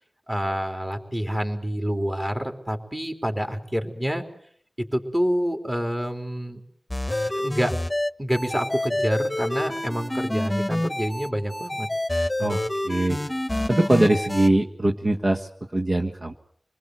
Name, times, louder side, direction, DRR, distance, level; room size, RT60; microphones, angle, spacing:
voice 1, 0.3-4.2 4.9-6.6 7.3-7.7 8.2-11.9, equal, 20° right, 5 dB, 3.7 m, -27 dB
sound 1, 6.9-14.5, left 1 dB, 20° left, 1.2 m, -27 dB
voice 2, 12.8-13.2 13.7-16.3, right 1 dB, 50° right, 2 dB, 1.5 m, -22 dB
26.5 x 20.5 x 7.9 m, 0.63 s
wide cardioid pair, 45°, 0 cm